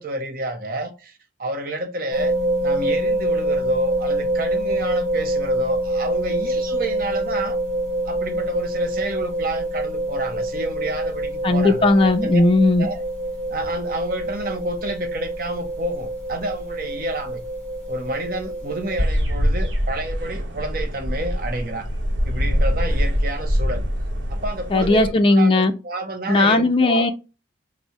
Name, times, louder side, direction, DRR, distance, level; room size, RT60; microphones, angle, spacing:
voice 1, 0.0-2.3 2.6-7.6 8.0-12.4 12.8-13.0 13.5-17.4 17.9-21.9 22.3-23.8 24.3-27.1, right 1 dB, 50° right, 0.7 m, -29 dB
sound 1, 2.1-19.0, right 1 dB, 10° left, 1.6 m, -26 dB
voice 2, 11.4-12.9 24.7-25.7 26.3-27.1, left 2 dB, 30° left, 0.4 m, -17 dB
sound 2, 19.0-25.1, equal, 80° right, 0.8 m, -23 dB
4.1 x 2.0 x 4.5 m
head